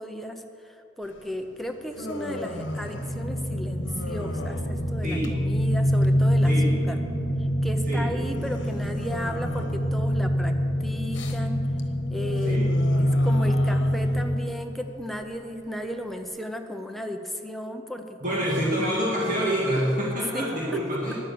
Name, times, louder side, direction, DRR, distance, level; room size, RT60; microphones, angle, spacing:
voice 1, 0.0-7.0 7.4-11.7 12.1-12.7 13.0-19.4 20.3-20.8, equal, ahead, 5 dB, 0.7 m, -35 dB
Human voice, 1.0-16.3, left 2 dB, 70° left, 1.2 m, -39 dB
sound 1, 2.1-14.4, equal, 55° left, 1.6 m, -25 dB
voice 2, 18.2-21.1, equal, 45° right, -5 dB, 1.8 m, -26 dB
10.5 x 9.7 x 7.0 m, 2.9 s
head